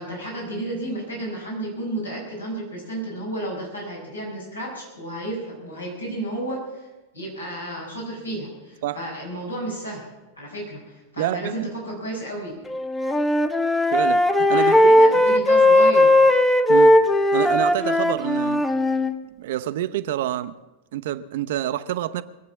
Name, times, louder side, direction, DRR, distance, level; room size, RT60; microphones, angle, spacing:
voice 1, 0.0-6.9 7.1-10.0 10.4-12.6 14.5-16.1, right 1 dB, 85° left, 5.4 m, -32 dB
voice 2, 11.2-11.5 13.9-14.8 16.7-17.0 17.3-18.6 19.4-20.5 20.9-22.2, right 12 dB, 55° right, 0.6 m, -27 dB
Wind instrument woodwind instrument, 12.7-19.1, left 1 dB, 10° left, 0.9 m, -17 dB
22.0 x 8.5 x 7.3 m
figure-of-eight pair, 90°, 0 cm